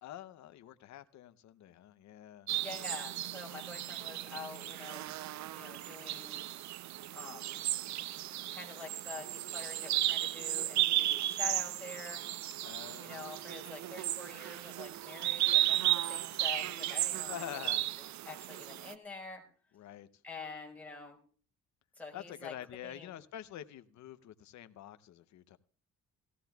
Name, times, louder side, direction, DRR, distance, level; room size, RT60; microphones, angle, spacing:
voice 1, 0.0-2.5 12.6-13.2 17.3-17.8 19.7-20.1 22.1-25.6, left 12 dB, 70° left, 0.7 m, -46 dB
sound 1, 2.5-18.9, right 14 dB, 65° right, 0.5 m, -34 dB
voice 2, 2.6-5.1 5.5-6.4 7.1-7.5 8.5-12.2 13.0-17.7 18.3-19.4 20.2-21.2 22.0-22.5 22.8-23.1, left 4 dB, 5° left, 4.3 m, -46 dB
17.5 x 15.5 x 2.3 m
cardioid pair, 90°, 30 cm